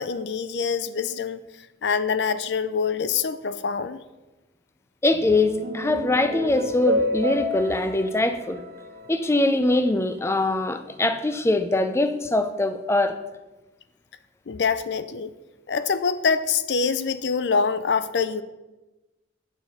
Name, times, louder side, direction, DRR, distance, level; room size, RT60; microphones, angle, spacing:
voice 1, 0.0-1.4 1.8-4.0 14.5-15.3 15.7-18.4, left 5 dB, 70° left, 13 dB, 0.5 m, -25 dB
voice 2, 5.0-8.6 9.1-13.2, left 2 dB, 15° left, 10 dB, 0.5 m, -22 dB
sound 1, 5.1-9.7, equal, 55° right, 1.3 m, -30 dB
8.5 x 7.2 x 5.6 m, 1.1 s
head